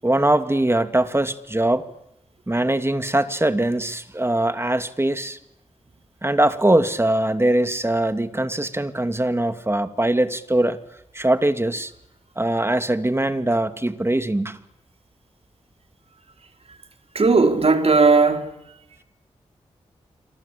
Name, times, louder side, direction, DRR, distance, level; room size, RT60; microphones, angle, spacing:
voice 1, 0.0-1.9 2.5-5.4 6.2-10.8 11.1-11.9 12.4-14.6, right 1 dB, 20° right, 2.4 m, -21 dB
voice 2, 17.1-18.5, right 4 dB, 55° right, 4.5 m, -16 dB
27.0 x 24.5 x 8.7 m
cardioid pair, 40°, 13 cm